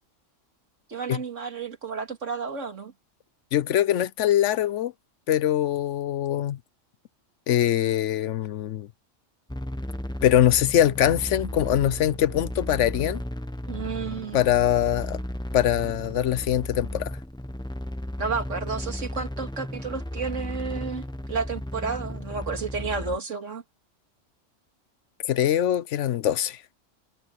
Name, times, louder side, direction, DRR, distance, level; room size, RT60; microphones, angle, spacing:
voice 1, 0.9-2.9 13.7-14.4 18.2-23.6, right 5 dB, 85° right, 2.5 m, -32 dB
voice 2, 3.5-4.9 5.3-6.6 7.5-8.9 10.2-13.2 14.3-15.2 15.5-17.1 25.2-26.6, left 11 dB, 75° left, 1.0 m, -23 dB
sound 1, 9.5-23.2, left 1 dB, 5° left, 1.0 m, -34 dB
omnidirectional pair, 1.3 m